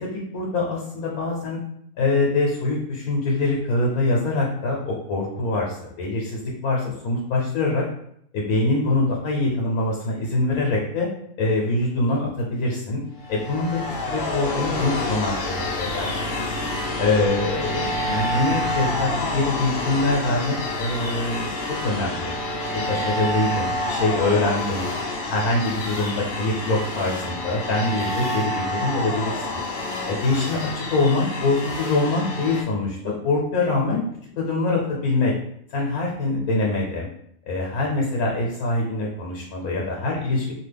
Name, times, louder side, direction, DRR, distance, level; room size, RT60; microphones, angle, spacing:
voice 1, 0.0-1.6 2.0-7.8 8.3-11.1 11.4-13.0 13.3-16.6 17.0-21.6 21.8-22.3 22.7-24.8 25.3-29.6 30.1-34.0 34.4-35.3 35.7-37.1 37.5-40.5, left 2 dB, 85° left, -2 dB, 1.2 m, -24 dB
sound 1, 13.2-32.6, left 1 dB, 60° left, 0.6 m, -28 dB
2.8 x 2.4 x 3.3 m, 0.71 s
omnidirectional pair, 1.5 m